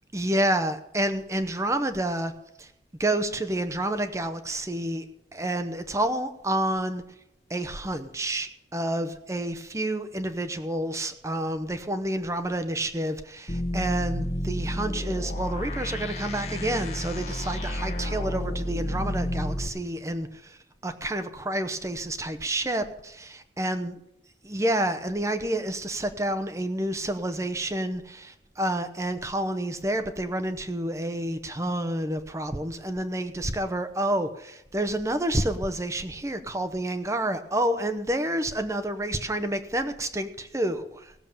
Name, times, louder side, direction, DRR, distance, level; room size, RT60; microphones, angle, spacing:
voice 1, 0.1-2.3 2.6-2.7 3.0-5.1 5.3-7.0 7.5-23.9 24.4-41.1, right 1 dB, 15° right, 9 dB, 0.8 m, -29 dB
sound 1, 13.5-19.7, equal, 35° left, 1.3 m, -31 dB
17.0 x 7.1 x 7.1 m, 0.80 s
head